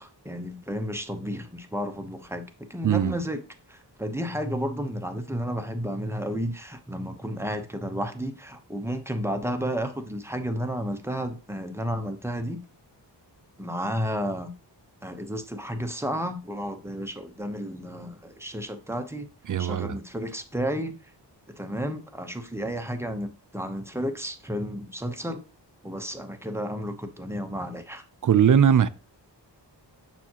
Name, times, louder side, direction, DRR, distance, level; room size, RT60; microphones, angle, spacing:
voice 1, 0.0-2.4 2.7-3.4 3.7-12.6 13.6-14.5 15.0-19.3 19.6-21.0 21.6-25.4 25.8-28.0, equal, 5° right, 0.8 m, -32 dB
voice 2, 2.8-3.2 19.5-20.0 28.2-28.9, right 8 dB, 45° right, 0.5 m, -20 dB
7.0 x 5.8 x 2.9 m
wide cardioid pair, 95°, 43 cm